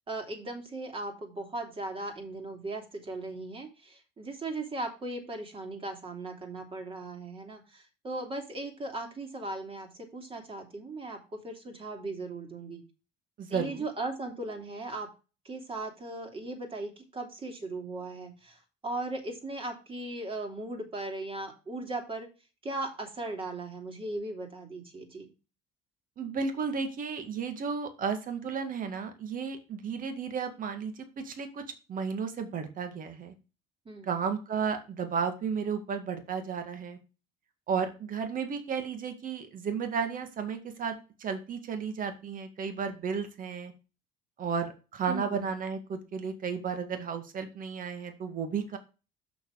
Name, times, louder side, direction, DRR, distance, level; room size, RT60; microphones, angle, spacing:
voice 1, 0.1-12.8 13.5-15.1 15.4-22.3 22.6-25.3 33.8-34.1 45.1-45.4, right 2 dB, 30° right, 4 dB, 3.0 m, -38 dB
voice 2, 13.4-13.8 26.2-31.6 31.9-33.3 34.0-37.0 37.7-43.7 44.4-48.8, right 6 dB, 45° right, 7 dB, 2.0 m, -33 dB
7.0 x 6.3 x 4.8 m, 0.31 s
cardioid pair, 110°, 19 cm